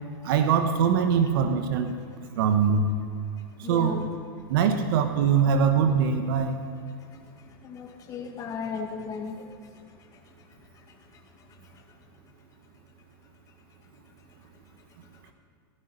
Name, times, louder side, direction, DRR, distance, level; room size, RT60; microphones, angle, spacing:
voice 1, 0.2-1.9 2.4-2.9 3.7-4.0 4.5-6.6, right 6 dB, 60° right, 7 dB, 1.3 m, -22 dB
voice 2, 3.6-4.1 7.0-12.0 14.3-14.5 14.9-15.3, left 6 dB, 25° left, 3 dB, 2.0 m, -39 dB
15.5 x 13.0 x 5.6 m, 2.3 s
supercardioid pair, 140°, 13 cm